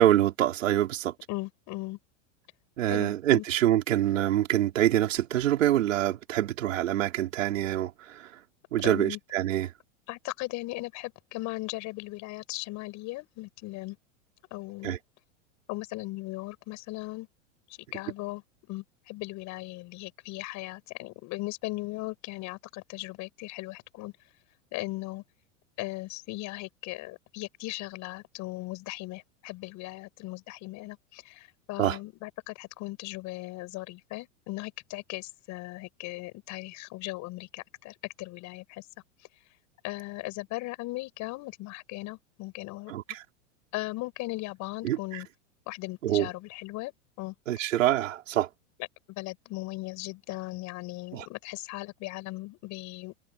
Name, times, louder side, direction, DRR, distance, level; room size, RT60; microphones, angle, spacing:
voice 1, 0.0-1.1 2.8-8.4 8.7-9.7 14.8-15.0 31.8-32.0 42.9-43.2 44.8-45.2 46.0-46.3 47.5-48.5 51.1-51.3, right 13 dB, 80° right, 4.7 m, -25 dB
voice 2, 1.3-2.0 2.8-3.4 8.8-9.2 10.1-14.0 14.5-15.0 15.7-17.3 17.9-18.4 18.7-24.1 24.7-25.2 25.8-38.9 39.8-42.9 43.7-45.3 45.7-46.9 47.2-47.3 49.1-53.1, left 20 dB, 50° left, 7.7 m, -38 dB
hypercardioid pair, 115°, 38 cm